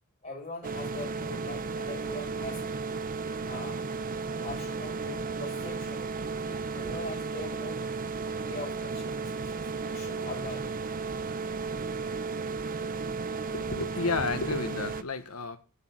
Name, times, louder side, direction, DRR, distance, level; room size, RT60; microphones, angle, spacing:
voice 1, 0.2-2.8 3.5-3.8 4.4-6.1 6.4-7.8 8.4-10.7, left 2 dB, 30° left, -2 dB, 5.3 m, -42 dB
sound 1, 0.6-15.0, right 4 dB, 40° right, 0.7 m, -34 dB
voice 2, 13.4-15.6, left 3 dB, 85° left, 9 dB, 1.5 m, -32 dB
9.6 x 6.6 x 7.5 m, 0.34 s
head